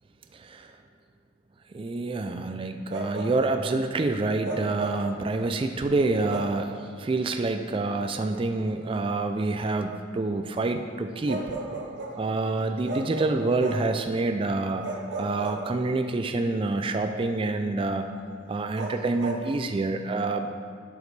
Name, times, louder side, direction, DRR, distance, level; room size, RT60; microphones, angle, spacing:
voice 1, 0.3-0.7 1.7-11.5 12.2-14.8 15.2-18.1 18.5-20.5, right 3 dB, 25° right, 6 dB, 0.3 m, -27 dB
Bark, 2.9-3.6 4.4-5.1 6.3-6.6 8.3-8.5 11.3-12.2 12.9-14.0 14.8-16.1 18.8-19.5, right 2 dB, 60° right, 0.9 m, -34 dB
11.5 x 5.2 x 3.2 m, 2.2 s
head